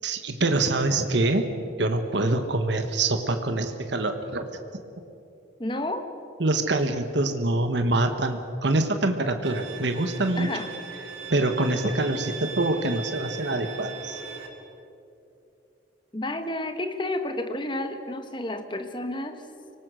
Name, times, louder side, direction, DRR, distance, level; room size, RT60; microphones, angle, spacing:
voice 1, 0.0-1.5 1.8-4.5 6.4-10.5 11.3-14.2, right 2 dB, 60° right, 7 dB, 1.3 m, -25 dB
voice 2, 5.6-6.1 10.4-10.7 16.1-19.4, left 1 dB, 25° left, 7 dB, 1.3 m, -31 dB
Bowed string instrument, 9.4-14.5, right 5 dB, 85° right, 2.7 m, -39 dB
25.0 x 19.0 x 6.3 m, 2.7 s
head